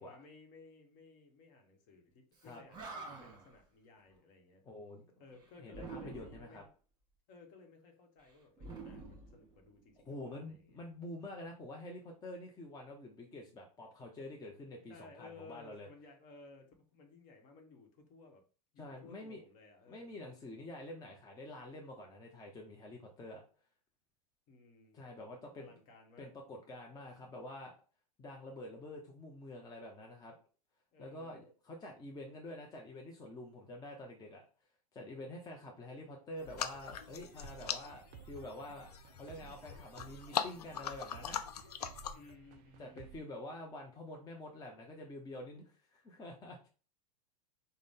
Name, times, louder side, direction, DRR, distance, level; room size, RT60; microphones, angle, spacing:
voice 1, 0.0-4.6 5.2-6.7 7.3-10.9 14.9-18.4 18.7-20.2 24.5-25.0 25.6-26.3 30.9-31.5 42.1-43.3, left 3 dB, 45° left, 3 dB, 1.1 m, -58 dB
Animal, 2.4-2.5 2.7-3.5 5.7-6.6 8.6-9.9, right 3 dB, 20° right, 1.4 m, -47 dB
voice 2, 4.6-5.0 5.6-6.6 10.1-15.9 18.8-19.4 19.9-23.4 24.9-25.7 26.2-27.7 28.2-30.3 31.0-34.4 34.9-41.4 42.8-46.7, left 1 dB, 20° left, 1 dB, 0.7 m, -47 dB
sound 1, 36.4-42.3, left 9 dB, 80° left, 0.4 m, -41 dB
sound 2, 36.5-43.2, right 9 dB, 45° right, 0.4 m, -56 dB
3.8 x 2.1 x 3.5 m, 0.37 s
hypercardioid pair, 100°, 20 cm